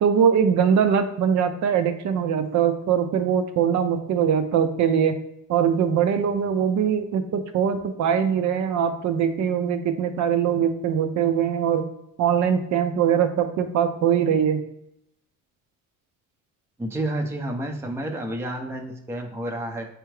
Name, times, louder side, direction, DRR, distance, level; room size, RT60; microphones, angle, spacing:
voice 1, 0.0-5.1 5.5-11.9 12.2-14.6, right 8 dB, 60° right, 8 dB, 0.5 m, -22 dB
voice 2, 16.8-19.9, right 1 dB, 10° right, 3 dB, 0.4 m, -30 dB
4.7 x 3.4 x 3.1 m, 0.82 s
cardioid pair, 160°, 33 cm